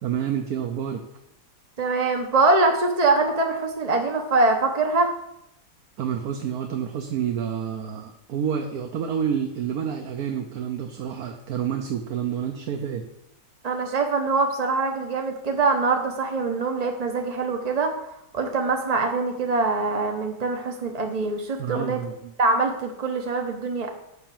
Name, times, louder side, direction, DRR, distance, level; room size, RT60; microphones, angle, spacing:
voice 1, 0.0-1.0 6.0-13.1 21.6-22.3, right 8 dB, 60° right, 4 dB, 1.3 m, -29 dB
voice 2, 1.8-5.1 13.6-17.9 18.3-22.0 22.4-23.9, right 3 dB, 35° right, 3 dB, 0.6 m, -23 dB
10.0 x 5.8 x 7.5 m, 0.82 s
omnidirectional pair, 2.0 m